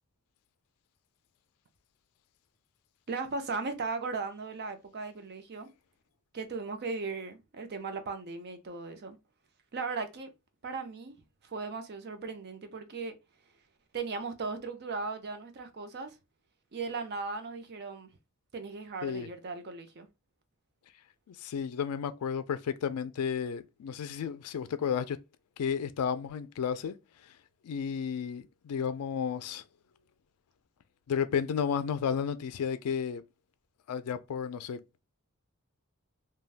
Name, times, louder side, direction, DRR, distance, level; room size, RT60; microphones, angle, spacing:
voice 1, 3.1-5.7 6.3-9.2 9.7-10.3 10.6-13.1 13.9-16.2 16.7-18.1 18.5-20.1, right 4 dB, 50° right, 0.6 m, -37 dB
voice 2, 21.3-25.2 25.6-27.0 27.6-29.6 31.1-33.2 33.9-35.0, left 7 dB, 80° left, 0.4 m, -32 dB
3.3 x 2.2 x 2.4 m
head